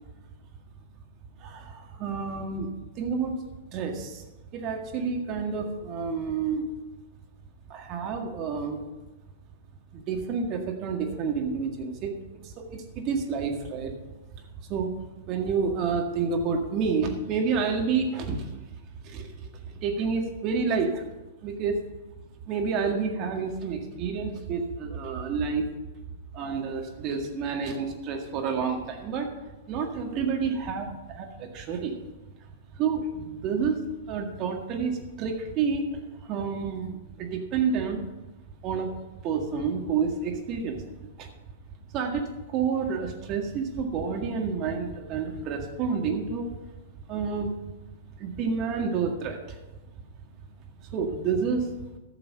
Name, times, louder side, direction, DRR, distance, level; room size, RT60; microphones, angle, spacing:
voice 1, 1.4-3.3 3.7-4.2 4.5-6.7 7.7-8.8 9.9-12.1 12.4-13.9 14.7-15.0 15.3-18.5 19.0-21.0 21.4-21.8 22.5-25.7 26.3-29.3 29.7-32.0 32.8-33.8 34.1-35.9 36.2-38.0 38.6-38.9 39.2-40.8 41.2-41.3 41.9-42.2 42.5-46.5 47.1-47.5 48.2-49.6 50.8-51.7, right 5 dB, 40° right, 3 dB, 1.9 m, -29 dB
12.5 x 6.9 x 5.6 m, 1.1 s
hypercardioid pair, 110°, 0 cm